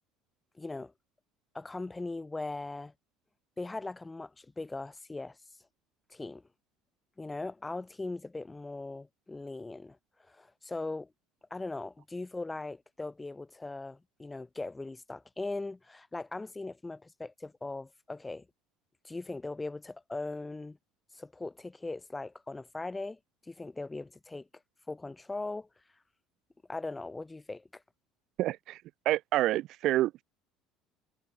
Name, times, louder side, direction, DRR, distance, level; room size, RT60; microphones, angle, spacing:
voice 1, 0.5-0.9 1.5-2.9 3.6-5.4 6.1-6.4 7.2-11.1 11.5-18.5 19.0-20.8 21.1-24.5 24.9-25.7 26.7-27.8, left 2 dB, 15° left, 0.5 m, -39 dB
voice 2, 28.4-30.2, right 15 dB, 60° right, 0.3 m, -28 dB
hypercardioid pair, 75°, 0 cm